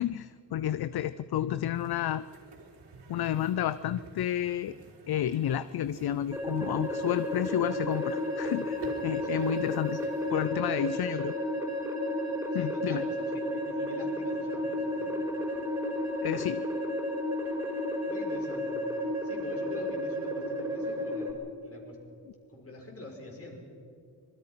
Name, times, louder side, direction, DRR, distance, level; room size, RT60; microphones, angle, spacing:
voice 1, 0.0-2.2 3.1-4.7 5.1-10.0 10.3-11.4 12.5-13.0 16.2-16.6, left 11 dB, 60° left, 16 dB, 0.6 m, -31 dB
sound 1, 1.7-10.5, right 4 dB, 75° right, 4.2 m, -49 dB
sound 2, 6.3-21.3, left 1 dB, 5° right, 4.7 m, -32 dB
voice 2, 10.3-10.8 12.5-15.2 18.1-22.0 22.5-23.6, left 2 dB, 35° left, 0 dB, 5.5 m, -46 dB
25.5 x 22.0 x 5.8 m, 2.4 s
cardioid pair, 100°, 42 cm